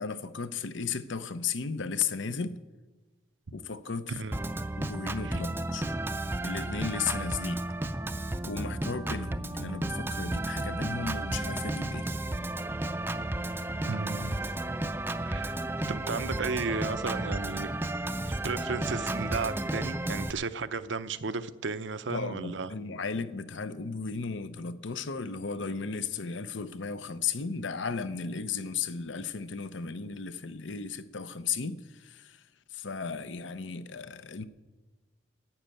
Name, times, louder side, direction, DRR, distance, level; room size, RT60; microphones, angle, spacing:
voice 1, 0.0-2.6 3.5-4.2 4.8-6.0 6.4-7.6 8.4-12.1 22.1-32.4 32.7-34.5, left 5 dB, 85° left, 0.8 m, -35 dB
Organ, 4.3-20.3, right 1 dB, 10° right, 0.4 m, -33 dB
voice 2, 13.9-14.4 15.2-15.6 15.9-17.7 18.3-22.7, right 4 dB, 80° right, 0.7 m, -34 dB
12.0 x 9.4 x 9.0 m
head